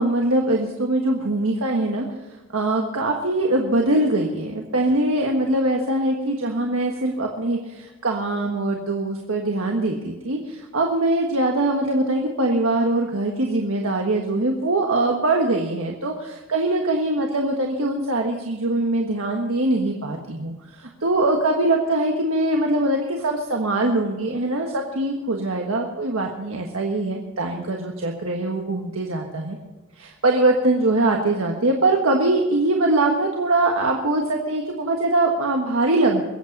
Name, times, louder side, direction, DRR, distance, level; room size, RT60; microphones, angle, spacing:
voice 1, 0.0-2.0 2.5-29.6 30.0-36.2, right 2 dB, 85° right, 1 dB, 1.5 m, -22 dB
22.5 x 8.6 x 5.3 m, 1.2 s
head